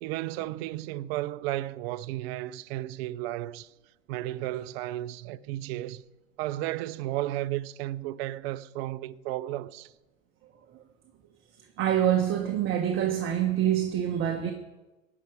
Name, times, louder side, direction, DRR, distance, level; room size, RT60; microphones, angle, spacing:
voice 1, 0.0-3.7 4.1-6.0 6.4-9.9, right 15 dB, 50° right, 0.7 m, -33 dB
voice 2, 11.8-14.5, right 10 dB, 30° right, 1.3 m, -25 dB
16.5 x 6.0 x 9.8 m
hypercardioid pair, 120°, 39 cm